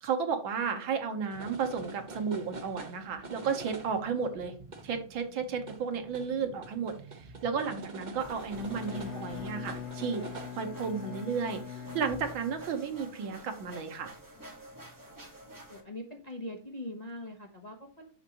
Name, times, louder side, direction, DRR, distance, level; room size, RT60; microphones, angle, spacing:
voice 1, 0.0-4.5 4.8-6.9 7.4-10.2 10.6-14.1, right 6 dB, 85° right, 6 dB, 2.0 m, -33 dB
sound 1, 1.3-11.1, right 3 dB, 40° right, 0.6 m, -46 dB
sound 2, 8.2-15.8, right 1 dB, 10° right, 1.3 m, -49 dB
Bowed string instrument, 8.5-12.7, left 8 dB, 70° left, 1.7 m, -42 dB
voice 2, 15.7-18.1, left 1 dB, 35° left, 1 dB, 0.7 m, -42 dB
6.5 x 6.2 x 2.9 m, 0.41 s
omnidirectional pair, 2.1 m